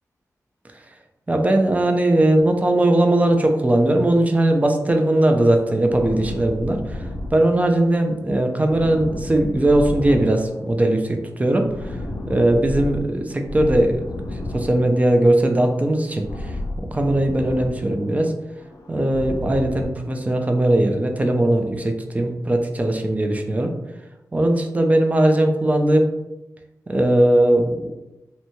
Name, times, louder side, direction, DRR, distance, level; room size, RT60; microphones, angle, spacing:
voice 1, 1.3-12.0 12.3-14.0 14.5-18.3 18.9-23.7 24.3-26.1 26.9-27.9, right 1 dB, 25° right, 4 dB, 0.4 m, -19 dB
sound 1, 5.9-8.0 8.3-10.8 11.1-13.0 13.4-15.4 15.6-18.2 18.5-19.8, left 1 dB, 80° left, 0.5 m, -32 dB
2.8 x 2.2 x 2.7 m, 0.96 s
wide cardioid pair, 90°, 6 cm